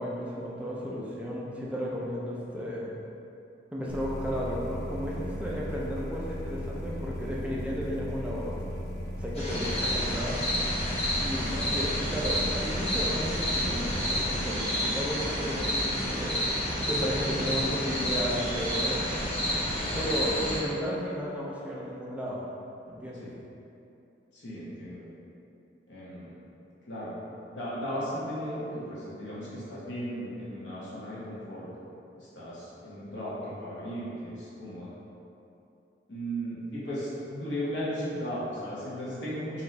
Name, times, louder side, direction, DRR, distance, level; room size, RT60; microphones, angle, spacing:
voice 1, 0.0-2.9 3.7-8.6 9.2-10.4 11.2-16.4 16.9-19.0 19.9-22.5 22.9-23.3, equal, 5° right, -5 dB, 0.4 m, -34 dB
sound 1, 3.9-14.5, equal, 60° left, 0.5 m, -37 dB
sound 2, 9.4-20.6, equal, 35° left, 1.1 m, -30 dB
voice 2, 24.3-25.0 25.9-26.3 26.9-27.2 27.5-31.7 32.2-34.9 36.1-39.6, equal, 80° left, -9 dB, 1.1 m, -36 dB
4.1 x 2.7 x 3.2 m, 2.7 s
head